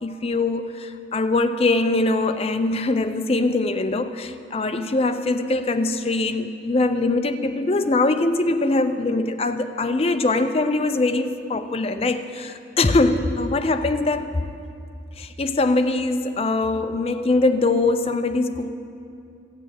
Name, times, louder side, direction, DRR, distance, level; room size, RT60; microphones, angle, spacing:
voice 1, 0.0-14.3 15.2-18.7, left 2 dB, 30° left, 8 dB, 0.5 m, -22 dB
12.0 x 9.0 x 7.6 m, 2.5 s
head